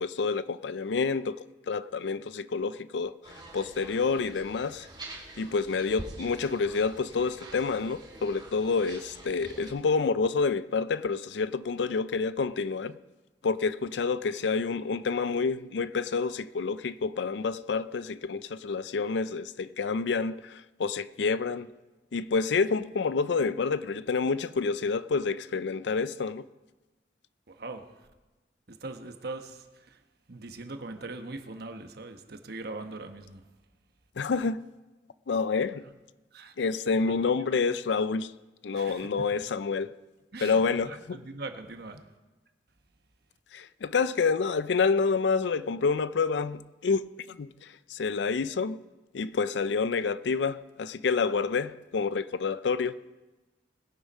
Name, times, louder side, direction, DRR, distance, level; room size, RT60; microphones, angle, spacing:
voice 1, 0.0-1.4 1.7-4.9 5.4-13.0 13.4-21.7 22.1-26.4 34.2-34.7 35.3-35.8 36.6-38.3 38.6-39.9 40.4-41.2 43.5-48.8 49.1-53.0, left 4 dB, 75° left, 0.5 m, -28 dB
sound 1, 3.2-9.7, right 1 dB, 25° right, 2.8 m, -46 dB
voice 2, 27.5-28.1 28.7-30.0 30.3-33.4 35.8-35.9 36.3-36.5 37.1-37.2 37.5-37.6 38.7-39.2 40.3-42.0, right 3 dB, 60° right, 1.1 m, -41 dB
20.5 x 7.0 x 5.5 m
head